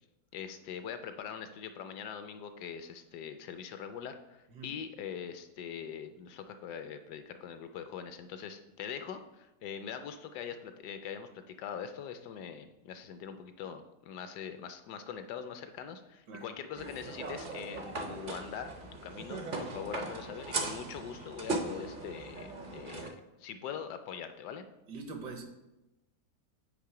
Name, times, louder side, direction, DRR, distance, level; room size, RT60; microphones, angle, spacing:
voice 1, 0.3-18.7 19.0-24.6, left 7 dB, 75° left, 9 dB, 1.1 m, -42 dB
sound 1, 16.8-23.1, right 2 dB, 55° right, 0.5 m, -39 dB
voice 2, 24.9-25.4, right 4 dB, 80° right, 5 dB, 1.6 m, -43 dB
8.6 x 3.2 x 4.8 m, 0.95 s
omnidirectional pair, 1.9 m